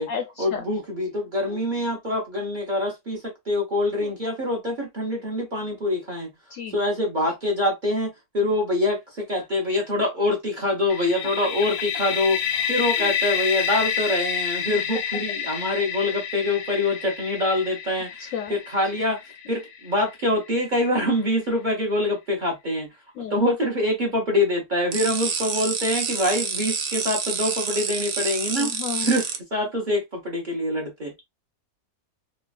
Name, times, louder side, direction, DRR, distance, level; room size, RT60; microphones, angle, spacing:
voice 1, 0.4-6.3 6.7-8.1 8.3-12.4 12.7-18.1 18.5-19.2 19.5-22.9 23.3-28.7 29.0-31.1, left 1 dB, 40° right, 0.8 m, -25 dB
sound 1, 10.9-20.6, left 8 dB, 85° left, 1.2 m, -29 dB
sound 2, 24.9-29.4, right 6 dB, 85° right, 0.5 m, -28 dB
voice 2, 28.6-29.1, left 7 dB, 70° left, 0.8 m, -30 dB
3.1 x 2.3 x 2.4 m
omnidirectional pair, 1.7 m